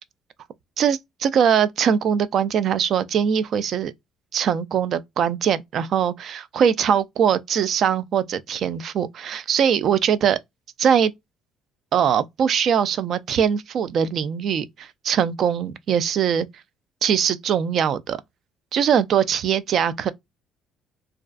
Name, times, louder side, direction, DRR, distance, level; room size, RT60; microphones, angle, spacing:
voice 1, 0.8-3.9 4.3-10.4 10.8-11.1 11.9-16.5 17.0-18.2 18.7-20.1, right 8 dB, 60° right, 0.3 m, -21 dB
2.4 x 2.2 x 2.4 m
supercardioid pair, 85°, 0 cm